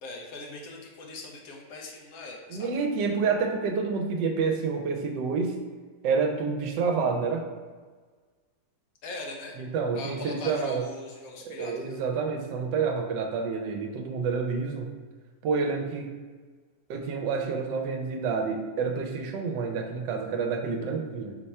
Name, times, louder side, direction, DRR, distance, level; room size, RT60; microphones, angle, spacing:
voice 1, 0.0-2.7 9.0-9.6 9.9-12.0, left 2 dB, 60° left, 0 dB, 1.0 m, -40 dB
voice 2, 2.5-5.5 6.0-7.4 9.6-10.8 11.4-14.9 15.4-16.1 16.9-21.4, right 5 dB, 80° right, 3 dB, 1.3 m, -28 dB
4.8 x 2.2 x 4.1 m, 1.4 s
omnidirectional pair, 1.9 m